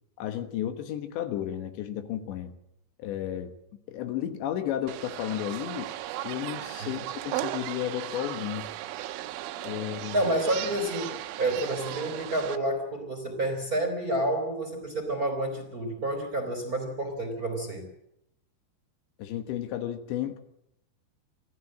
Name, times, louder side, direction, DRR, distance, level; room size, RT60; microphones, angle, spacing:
voice 1, 0.2-2.5 3.0-3.5 3.9-5.9 6.2-8.7 9.6-10.2 19.2-20.4, left 11 dB, 75° left, 8 dB, 3.5 m, -33 dB
sound 1, 4.9-12.6, right 14 dB, 90° right, 3.4 m, -36 dB
voice 2, 10.1-17.8, right 1 dB, 20° right, 5 dB, 2.8 m, -29 dB
25.0 x 14.5 x 7.6 m, 0.80 s
omnidirectional pair, 5.4 m